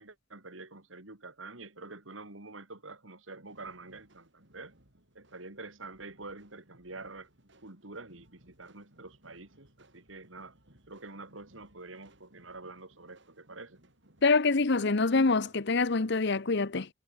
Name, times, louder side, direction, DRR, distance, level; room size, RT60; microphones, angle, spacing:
voice 1, 0.0-4.7 5.1-7.3 7.6-10.5 10.9-13.8, right 3 dB, 85° right, 4.1 m, -47 dB
sound 1, 3.4-16.1, right 1 dB, 65° right, 7.9 m, -63 dB
voice 2, 14.2-16.9, left 3 dB, 60° left, 0.9 m, -25 dB
head